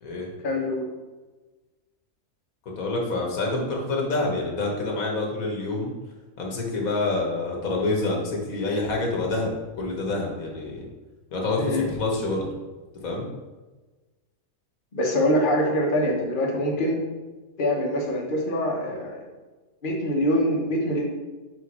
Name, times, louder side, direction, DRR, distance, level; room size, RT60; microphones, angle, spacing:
voice 1, 0.4-0.8 11.6-11.9 14.9-17.0 17.6-19.2 19.8-21.0, equal, 40° left, -1 dB, 1.2 m, -24 dB
voice 2, 2.7-5.9 6.4-10.8 11.3-12.5 13.0-13.3, left 2 dB, 90° left, 0 dB, 1.7 m, -27 dB
5.3 x 4.8 x 4.2 m, 1.2 s
omnidirectional pair, 1.4 m